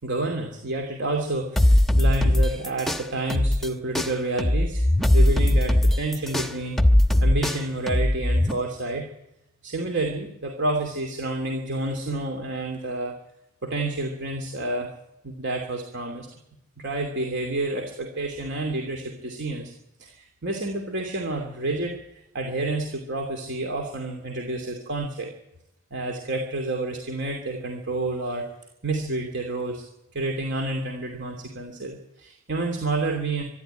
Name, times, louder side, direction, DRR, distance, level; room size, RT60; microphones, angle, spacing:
voice 1, 0.0-4.9 5.1-6.8 7.2-9.1 9.6-13.1 13.6-14.9 15.2-16.3 16.8-19.7 20.0-25.3 25.9-28.5 28.8-29.8 30.1-33.4, right 2 dB, 55° right, 3 dB, 2.7 m, -29 dB
sound 1, 1.6-3.7 3.9-8.5, left 1 dB, ahead, 1.2 m, -20 dB
24.5 x 11.5 x 9.0 m, 0.86 s
head